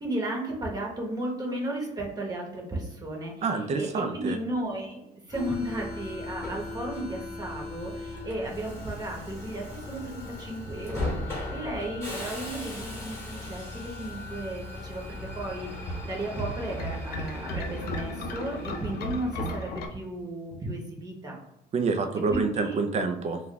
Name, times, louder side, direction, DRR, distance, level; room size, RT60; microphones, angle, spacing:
voice 1, 0.0-3.3 3.8-5.0 5.3-7.9 8.2-11.1 11.5-15.0 15.4-15.7 16.0-21.3 22.3-22.8, right 1 dB, 25° right, -1 dB, 1.0 m, -34 dB
voice 2, 3.4-4.4 21.7-23.4, right 4 dB, 40° right, 6 dB, 0.4 m, -27 dB
Subway metro underground, 5.3-19.6, left 2 dB, 15° left, 1.1 m, -38 dB
sound 1, 15.2-19.9, equal, 70° left, 0.5 m, -36 dB
2.3 x 2.2 x 3.8 m, 0.86 s
cardioid pair, 110°, 17 cm